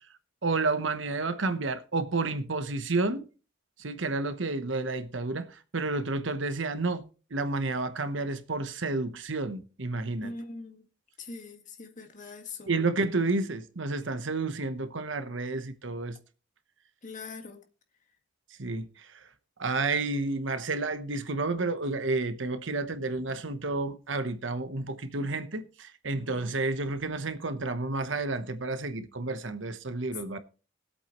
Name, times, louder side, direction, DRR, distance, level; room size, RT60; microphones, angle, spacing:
voice 1, 0.4-3.3 3.8-10.3 12.7-16.2 18.6-19.3 19.6-30.4, right 3 dB, 75° right, 1.0 m, -30 dB
voice 2, 10.2-10.8 11.2-12.7 17.0-17.6 26.2-26.4, left 3 dB, 40° left, 1.8 m, -42 dB
21.0 x 8.3 x 3.1 m
head